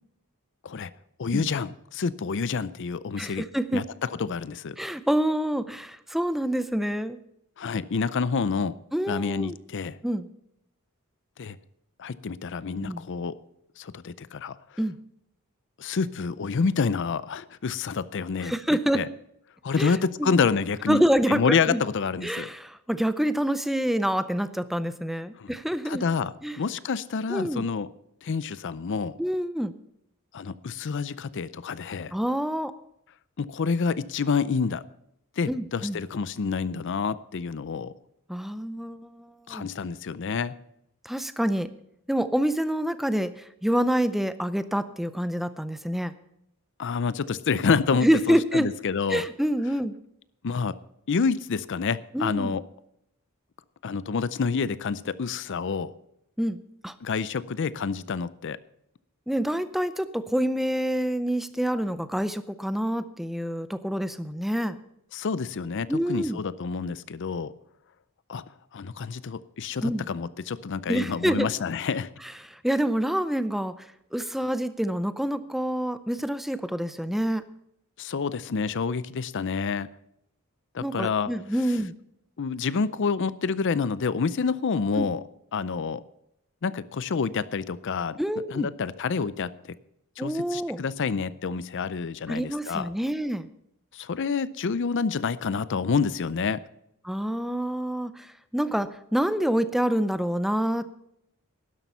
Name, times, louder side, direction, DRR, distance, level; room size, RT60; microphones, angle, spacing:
voice 1, 1.2-3.5 3.7-4.8 7.6-8.7 9.1-10.0 11.4-11.6 12.0-13.4 13.8-14.6 15.8-18.5 18.9-19.1 19.6-21.0 21.3-22.5 25.4-25.5 25.8-27.9 28.2-29.2 30.3-32.1 33.4-34.8 35.4-37.9 39.5-40.6 46.8-49.2 50.4-50.8 51.1-52.6 53.8-55.9 57.0-58.6 65.1-67.5 68.3-68.4 68.7-72.1 78.0-79.9 80.7-81.3 82.4-85.2 85.5-86.0 86.6-88.2 88.5-89.8 90.2-92.9 93.9-96.6, left 5 dB, 55° left, 17 dB, 0.5 m, -28 dB
voice 2, 3.2-3.8 4.8-7.2 8.9-9.6 10.0-10.3 12.8-13.0 14.8-15.0 18.4-19.0 19.8-20.3 20.9-21.8 22.2-26.0 26.4-26.6 27.3-27.6 29.2-29.7 32.1-32.7 35.5-36.0 38.3-39.7 41.0-41.7 42.1-46.1 48.0-48.7 49.1-49.9 52.1-52.6 56.4-56.9 59.3-64.8 65.9-66.4 69.8-70.1 70.9-71.5 72.5-77.4 80.8-81.9 85.0-85.1 88.2-88.7 90.2-90.8 92.3-93.5 97.0-100.8, equal, ahead, 12 dB, 0.5 m, -27 dB
12.0 x 11.5 x 5.5 m, 0.78 s
head